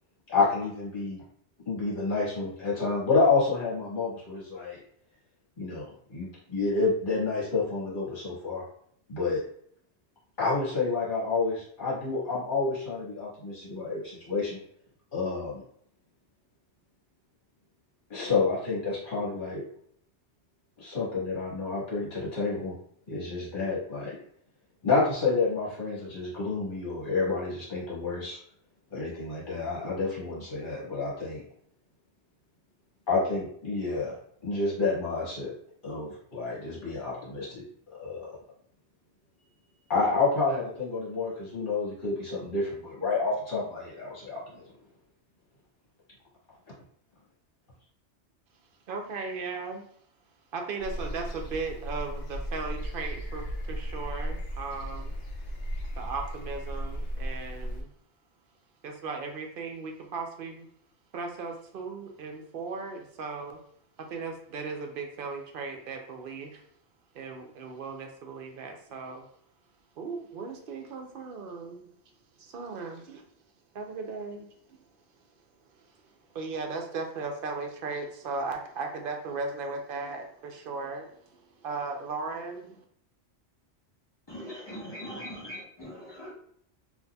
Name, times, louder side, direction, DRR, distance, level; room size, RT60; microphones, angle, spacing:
voice 1, 0.3-1.2 1.7-4.8 5.6-8.6 9.1-9.4 10.4-14.6 15.1-15.6 18.1-19.6 20.8-22.7 23.1-24.2 24.8-28.4 28.9-31.4 33.1-34.1 34.4-35.5 35.8-37.6 37.9-38.3 39.9-44.4, left 4 dB, 45° left, -7 dB, 1.6 m, -29 dB
voice 2, 48.9-49.8 50.5-55.2 56.0-57.9 58.8-60.7 61.1-63.6 64.1-66.6 67.1-69.3 70.0-71.9 72.4-73.2 73.7-74.8 76.3-82.8, right 4 dB, 60° right, 3 dB, 0.6 m, -37 dB
sound 1, 50.8-57.8, equal, 80° left, 0.9 m, -35 dB
voice 3, 84.3-86.3, equal, 25° left, -6 dB, 1.0 m, -41 dB
4.0 x 2.5 x 2.2 m, 0.65 s
omnidirectional pair, 1.2 m